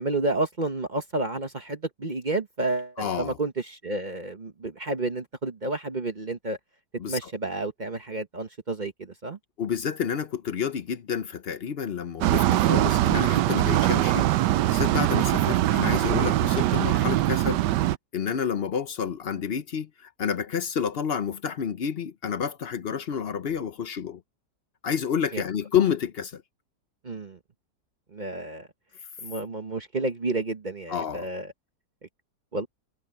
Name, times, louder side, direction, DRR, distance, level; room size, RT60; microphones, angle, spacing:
voice 1, 0.0-6.6 7.1-9.4 25.3-25.4 27.0-27.4 28.1-28.7 29.2-31.5 32.5-32.7, right 2 dB, 30° right, 1.1 m, -30 dB
voice 2, 3.0-3.4 7.0-7.2 9.6-17.6 18.1-24.2 24.8-26.4 30.9-31.3, left 7 dB, 55° left, 0.7 m, -29 dB
sound 1, 12.2-18.0, right 15 dB, 85° right, 1.2 m, -22 dB
omnidirectional pair, 1.8 m